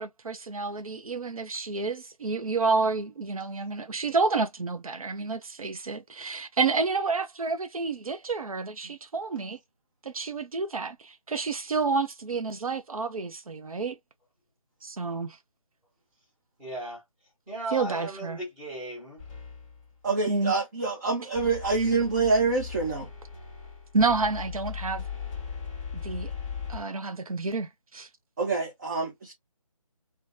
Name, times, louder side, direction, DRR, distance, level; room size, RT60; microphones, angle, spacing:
voice 1, 0.0-9.6 10.0-14.0 14.8-15.4 17.7-18.4 20.3-20.5 23.9-25.0 25.9-26.3 26.7-28.1, right 4 dB, 80° right, 0.5 m, -29 dB
voice 2, 16.6-17.0 17.5-19.2, right 1 dB, 10° right, 1.1 m, -36 dB
sound 1, 19.2-19.9 21.3-26.8, left 7 dB, 15° left, 1.0 m, -38 dB
voice 3, 20.0-23.1 28.4-29.3, right 4 dB, 30° right, 0.7 m, -26 dB
2.7 x 2.1 x 2.6 m
figure-of-eight pair, 160°, 18 cm